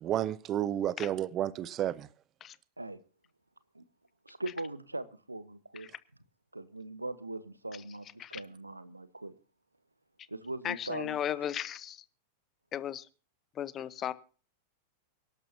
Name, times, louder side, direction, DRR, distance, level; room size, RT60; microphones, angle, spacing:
voice 1, 0.0-2.1, right 11 dB, 30° right, 0.8 m, -31 dB
voice 2, 4.2-5.9 6.5-9.3 10.3-11.4, right 2 dB, 85° right, 1.1 m, -40 dB
voice 3, 10.6-12.0 12.7-13.1 13.6-14.1, left 10 dB, 30° left, 1.0 m, -35 dB
24.0 x 12.0 x 2.8 m
figure-of-eight pair, 90°, 0 cm